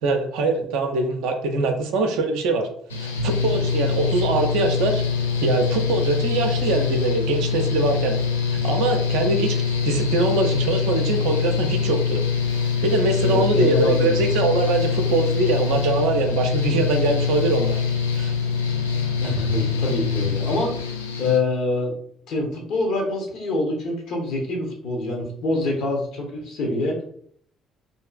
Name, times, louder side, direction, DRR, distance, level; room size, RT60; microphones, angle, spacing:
voice 1, 0.0-2.7 3.0-5.0 5.4-8.2 8.5-12.2 12.8-17.8 18.2-18.3, right 3 dB, 70° right, 4 dB, 0.4 m, -23 dB
Mechanical fan, 2.9-21.4, left 6 dB, 85° left, 0.3 m, -24 dB
voice 2, 13.2-14.2 19.2-21.9 22.3-27.0, left 2 dB, 60° left, 0 dB, 0.8 m, -25 dB
2.6 x 2.4 x 2.3 m, 0.62 s
figure-of-eight pair, 50°, 0 cm